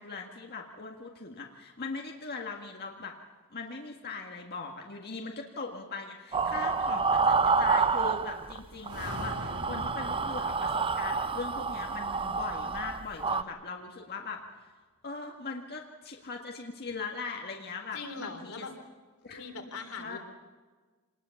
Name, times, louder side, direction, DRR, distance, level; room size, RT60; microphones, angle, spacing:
voice 1, 0.0-3.2 3.5-14.7 15.0-18.7 19.2-19.4 20.0-20.2, left 4 dB, 45° left, 1 dB, 1.8 m, -40 dB
sound 1, 6.3-8.6 8.9-13.4, right 4 dB, 25° right, 0.7 m, -28 dB
sound 2, 8.7-13.1, equal, 85° right, 2.8 m, -44 dB
voice 2, 17.9-18.7 19.2-20.2, left 4 dB, 85° left, 4 dB, 3.6 m, -41 dB
26.0 x 20.0 x 7.2 m, 1.4 s
head